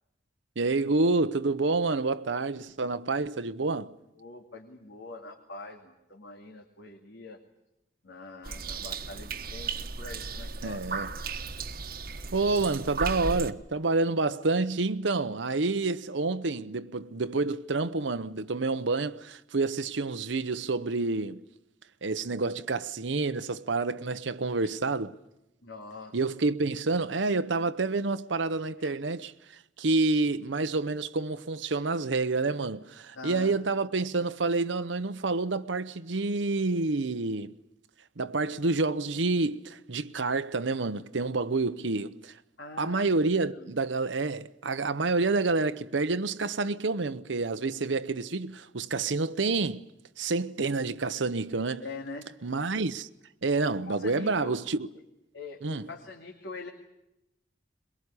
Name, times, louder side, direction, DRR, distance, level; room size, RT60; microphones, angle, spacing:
voice 1, 0.6-3.9 10.6-11.1 12.3-21.4 22.0-25.1 26.1-37.6 38.2-42.4 42.8-49.9 50.2-51.8 52.4-53.1 53.4-54.9 55.6-55.9, right 3 dB, 80° right, 0.8 m, -28 dB
voice 2, 4.2-7.4 8.0-11.4 25.6-26.2 28.8-29.0 33.2-33.5 42.6-43.2 43.5-43.7 51.8-52.3 53.9-54.6 55.3-56.7, left 3 dB, 75° left, 2.5 m, -44 dB
sound 1, 8.4-13.5, right 4 dB, 50° right, 1.2 m, -35 dB
22.5 x 21.5 x 9.8 m
head